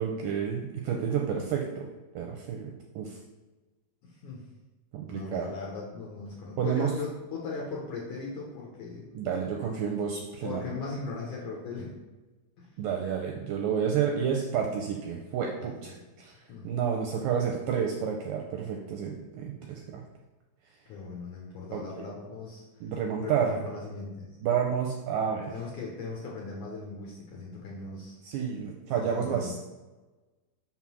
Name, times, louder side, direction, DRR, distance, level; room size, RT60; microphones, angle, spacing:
voice 1, 0.0-1.9 2.2-3.2 4.9-5.5 6.6-6.9 9.2-10.6 12.8-16.3 16.6-20.0 21.7-22.1 22.8-23.5 24.4-25.5 28.2-29.7, right 7 dB, 80° right, 1 dB, 2.0 m, -30 dB
voice 2, 4.0-4.4 5.1-9.1 10.4-11.9 12.6-12.7 15.6-16.0 16.5-16.6 20.9-24.4 25.5-28.2 28.9-29.5, left 4 dB, 70° left, -4 dB, 1.9 m, -39 dB
6.0 x 3.8 x 6.1 m, 1.2 s
omnidirectional pair, 4.6 m